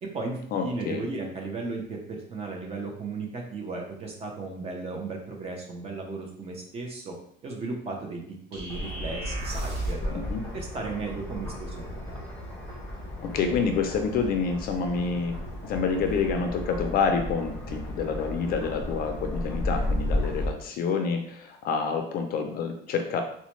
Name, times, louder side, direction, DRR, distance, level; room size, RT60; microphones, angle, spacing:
voice 1, 0.0-7.1 7.4-8.2 8.5-10.2 10.5-12.2, right 3 dB, 30° right, 1 dB, 0.6 m, -35 dB
voice 2, 0.5-1.0 10.1-10.4 13.2-15.4 15.7-23.2, left 5 dB, 45° left, 5 dB, 0.4 m, -28 dB
sound 1, 8.5-10.1, right 3 dB, 60° right, 1.3 m, -36 dB
sound 2, 8.7-20.5, left 1 dB, 10° left, 0.8 m, -34 dB
4.0 x 2.1 x 3.0 m, 0.66 s
cardioid pair, 165°, 21 cm